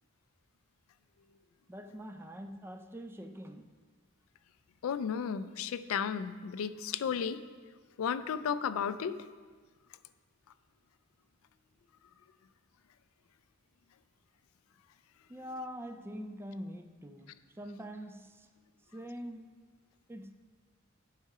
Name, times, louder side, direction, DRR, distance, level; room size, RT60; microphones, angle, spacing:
voice 1, 1.7-3.7 15.3-18.5 18.9-19.5 20.1-20.3, equal, 10° right, 7 dB, 0.3 m, -44 dB
voice 2, 4.8-7.4 8.0-9.2, left 7 dB, 80° left, 13 dB, 0.4 m, -33 dB
8.2 x 5.8 x 4.8 m, 1.5 s
head